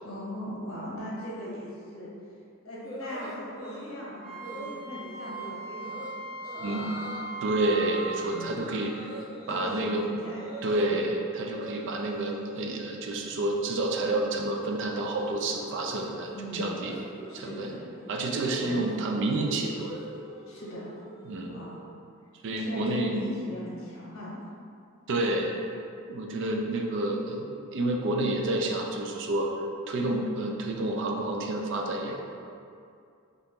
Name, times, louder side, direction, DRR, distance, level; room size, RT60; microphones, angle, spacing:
voice 1, 0.0-2.1 2.6-6.9 8.3-8.7 9.5-10.4 10.7-11.0 16.3-16.8 17.3-17.8 18.6-18.9 20.5-20.9 21.5-21.8 22.5-24.5, equal, 75° left, -6 dB, 0.9 m, -39 dB
sound 1, 2.8-4.0 4.4-4.8 5.2-5.5 5.8-6.1 6.4-7.2 7.6-11.1 11.3-12.6 13.0-13.4 13.6-21.8, equal, 15° left, 0.5 m, -44 dB
Wind instrument woodwind instrument, 4.2-8.3, right 3 dB, 40° right, 1.2 m, -38 dB
voice 2, 7.4-8.9 9.5-10.1 10.6-16.9 17.3-17.7 18.1-20.0 21.2-21.6 22.4-23.1 25.1-25.5 26.1-29.5 29.9-32.2, right 2 dB, 60° right, 1 dB, 0.4 m, -29 dB
2.8 x 2.5 x 3.5 m, 2.4 s
head